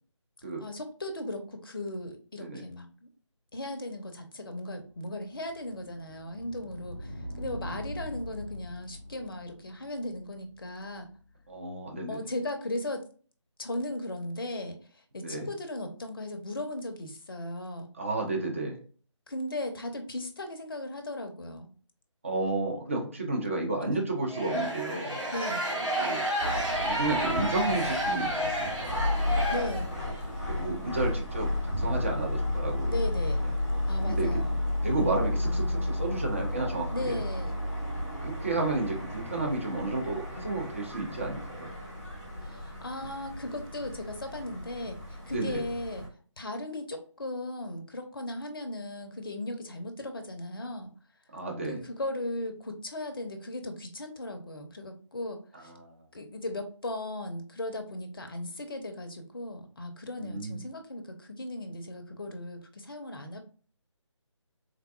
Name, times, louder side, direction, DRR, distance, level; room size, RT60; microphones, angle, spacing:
voice 1, 0.6-3.1 3.5-11.1 12.1-13.1 13.6-17.9 19.3-21.7 23.8-24.0 25.3-25.6 29.5-29.9 32.9-33.5 33.9-34.6 36.9-37.6 42.4-46.1 46.4-50.9 51.7-55.7 56.1-63.4, left 1 dB, 45° left, 5 dB, 0.5 m, -37 dB
sound 1, 4.8-11.6, equal, 60° right, 1.0 m, -43 dB
voice 2, 11.5-12.2 15.2-15.5 18.0-18.8 22.2-25.2 26.0-26.2 26.8-28.9 30.5-33.0 33.4-33.5 34.0-34.3 34.8-37.2 38.2-41.7 45.3-45.6 51.3-51.8 55.6-55.9 60.2-60.6, right 2 dB, 25° right, 0 dB, 0.5 m, -32 dB
sound 2, 24.3-30.2, right 1 dB, 80° right, 1.4 m, -31 dB
sound 3, 26.4-46.1, left 1 dB, ahead, 0.9 m, -32 dB
3.5 x 2.2 x 2.3 m, 0.40 s
figure-of-eight pair, 155°, 16 cm